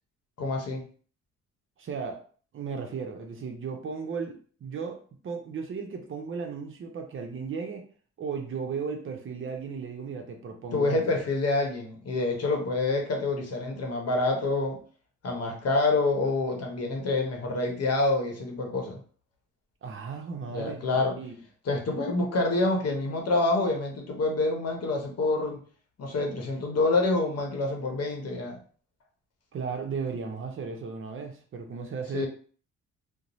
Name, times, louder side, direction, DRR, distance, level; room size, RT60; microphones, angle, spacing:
voice 1, 0.4-0.8 10.7-14.8 15.2-19.0 20.5-21.1 21.6-25.6 26.0-28.6 32.1-32.3, left 2 dB, 55° left, 1 dB, 0.9 m, -27 dB
voice 2, 1.8-2.2 2.5-7.9 8.2-11.0 19.8-21.4 29.5-32.3, right 5 dB, 45° right, 4 dB, 0.5 m, -35 dB
2.5 x 2.0 x 3.0 m, 0.43 s
cardioid pair, 90°, 30 cm